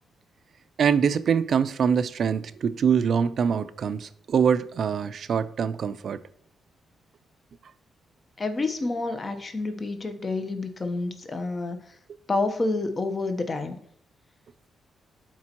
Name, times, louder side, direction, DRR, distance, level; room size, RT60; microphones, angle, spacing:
voice 1, 0.8-6.2, right 7 dB, 60° right, 0.4 m, -24 dB
voice 2, 8.4-11.8 12.3-13.8, left 3 dB, 35° left, 0.9 m, -28 dB
12.0 x 4.4 x 2.9 m
cardioid pair, 80°, 0 cm